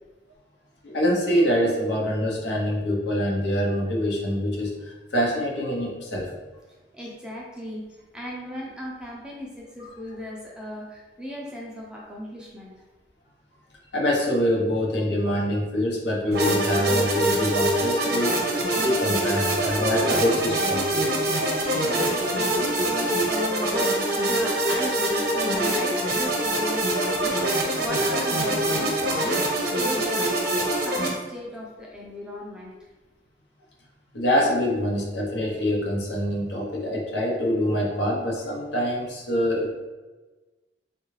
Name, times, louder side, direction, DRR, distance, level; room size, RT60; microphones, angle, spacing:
voice 1, 0.8-6.3 13.9-18.4 18.8-20.8 34.1-39.7, equal, 70° left, -1 dB, 0.7 m, -25 dB
voice 2, 6.9-7.9 8.1-12.7 19.3-19.8 21.3-23.9 24.3-29.4 29.8-30.3 30.8-32.7, left 1 dB, 5° right, -3 dB, 0.4 m, -36 dB
sound 1, 16.3-31.1, right 1 dB, 60° right, 0.7 m, -24 dB
3.6 x 2.3 x 3.1 m, 1.2 s
head